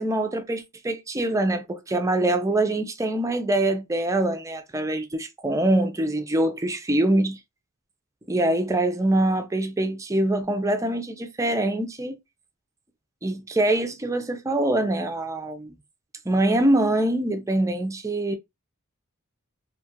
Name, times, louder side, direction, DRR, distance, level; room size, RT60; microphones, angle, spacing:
voice 1, 0.0-7.4 8.3-12.2 13.2-15.7 16.3-18.4, right 1 dB, 15° right, 0.4 m, -24 dB
2.8 x 2.3 x 2.7 m
head